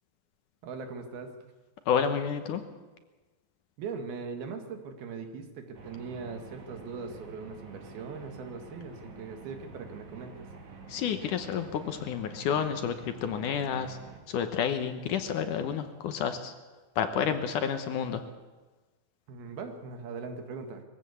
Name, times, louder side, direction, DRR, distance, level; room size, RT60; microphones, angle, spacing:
voice 1, 0.6-1.4 3.8-10.5 19.3-20.8, right 5 dB, 85° right, 6 dB, 3.8 m, -40 dB
voice 2, 1.9-2.6 10.9-14.0 14.3-16.5 17.0-18.2, left 7 dB, 70° left, 8 dB, 2.3 m, -30 dB
sound 1, 5.7-14.2, right 4 dB, 55° right, 3.5 m, -48 dB
22.0 x 15.0 x 8.4 m, 1.2 s
omnidirectional pair, 4.3 m